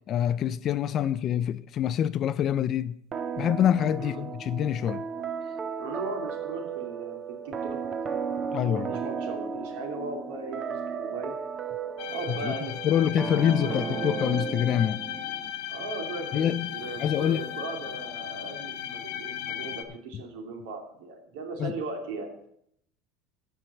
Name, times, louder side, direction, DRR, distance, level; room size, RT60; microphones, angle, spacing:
voice 1, 0.1-3.0 3.4-5.0 8.5-9.0 12.3-12.5 12.8-15.0 16.3-16.7 17.0-17.4 21.6-21.7, left 10 dB, 30° left, 0.4 m, -26 dB
sound 1, 3.1-15.5, right 6 dB, 25° right, 0.7 m, -34 dB
voice 2, 5.8-7.8 8.6-11.3 12.1-13.0 13.3-14.3 15.7-22.5, right 3 dB, 80° right, 2.7 m, -38 dB
sound 2, 12.0-19.8, left 11 dB, 70° left, 1.1 m, -36 dB
14.0 x 4.6 x 7.1 m
cardioid pair, 160°, 0 cm